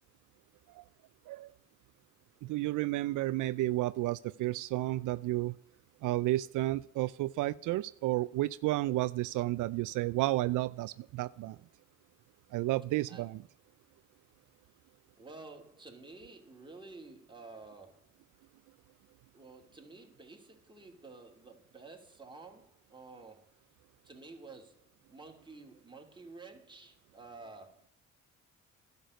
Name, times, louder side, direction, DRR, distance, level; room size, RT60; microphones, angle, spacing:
voice 1, 2.4-5.5 6.0-11.6 12.5-13.4, right 17 dB, 85° right, 0.5 m, -32 dB
voice 2, 15.2-18.1 19.3-23.5 24.0-27.9, right 3 dB, 15° right, 2.8 m, -51 dB
11.5 x 6.8 x 9.2 m
cardioid pair, 90°, 30 cm